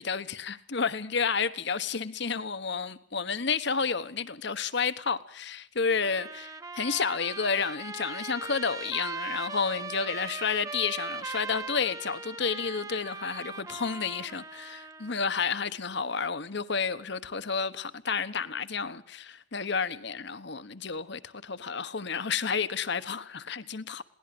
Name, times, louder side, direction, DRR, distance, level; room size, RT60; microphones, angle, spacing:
voice 1, 0.0-24.0, left 5 dB, 60° left, 1.2 m, -31 dB
Trumpet, 6.0-15.2, right 4 dB, 20° right, 1.0 m, -39 dB
22.0 x 17.5 x 7.8 m
head